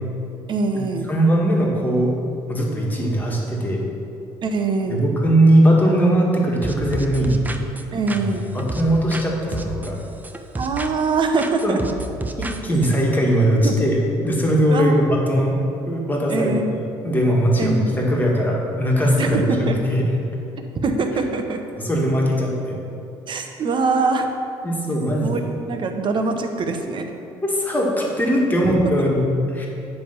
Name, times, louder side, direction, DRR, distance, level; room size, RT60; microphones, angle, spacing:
voice 1, 0.5-1.1 4.4-5.0 7.9-8.5 10.6-11.8 13.6-13.9 14.7-15.1 16.3-16.8 17.6-18.0 19.2-19.8 20.8-21.6 23.3-24.3 25.2-27.1 28.6-28.8, right 4 dB, 50° right, 5 dB, 0.9 m, -23 dB
voice 2, 1.1-2.1 2.5-3.8 4.8-7.4 8.1-8.3 8.5-10.0 11.6-11.7 12.4-14.0 14.2-15.5 15.9-20.1 21.8-22.8 24.6-25.4 27.4-29.2 29.5-29.7, right 1 dB, 15° left, -2 dB, 1.8 m, -20 dB
sound 1, 6.6-9.3 9.5-11.1 11.4-13.0, right 2 dB, 15° right, 0.6 m, -31 dB
9.1 x 3.4 x 6.7 m, 2.7 s
supercardioid pair, 80°, 11 cm